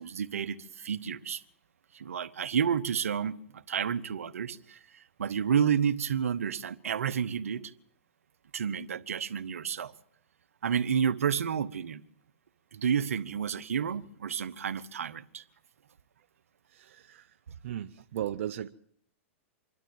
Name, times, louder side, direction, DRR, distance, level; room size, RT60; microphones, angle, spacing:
voice 1, 0.0-1.4 1.9-7.7 8.5-9.9 10.6-12.0 12.7-15.4, right 7 dB, 85° right, 14 dB, 1.1 m, -30 dB
voice 2, 16.7-17.2 17.6-18.7, right 11 dB, 70° right, 9 dB, 0.8 m, -36 dB
26.0 x 12.5 x 9.1 m, 0.64 s
hypercardioid pair, 120°, 7 cm